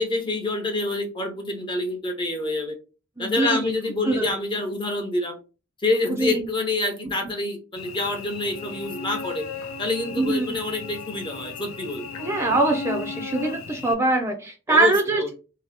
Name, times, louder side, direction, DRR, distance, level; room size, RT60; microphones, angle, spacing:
voice 1, 0.0-2.8 3.2-5.4 5.8-9.4 9.8-12.0 14.7-15.3, left 2 dB, 25° left, 4 dB, 0.8 m, -27 dB
voice 2, 3.2-3.7 4.1-4.3 6.2-6.5 10.2-10.6 12.2-15.3, right 2 dB, 15° right, 2 dB, 0.5 m, -23 dB
Cricket / Buzz, 7.8-13.9, left 5 dB, 80° left, 0.5 m, -36 dB
2.9 x 2.8 x 3.2 m, 0.32 s
head